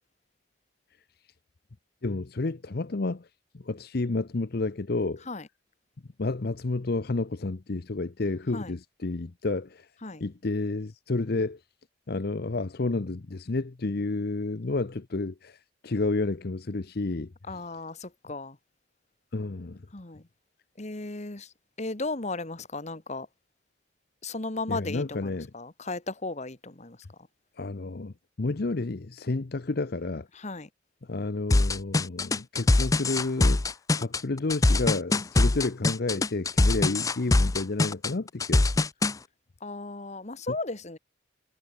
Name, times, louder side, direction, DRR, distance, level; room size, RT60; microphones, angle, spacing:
voice 1, 2.0-3.3 3.5-5.2 6.2-9.9 10.2-11.6 12.1-17.3 19.3-19.9 24.7-25.5 27.6-30.3 31.1-33.6 34.0-38.7, left 3 dB, 55° left, 0.7 m, -30 dB
voice 2, 17.4-18.6 19.9-20.2 20.8-23.3 24.2-27.0 30.3-30.7 35.1-35.5 36.8-36.9 39.6-41.0, left 2 dB, 35° left, 1.6 m, -36 dB
sound 1, 31.5-39.1, left 2 dB, 15° left, 0.4 m, -23 dB
head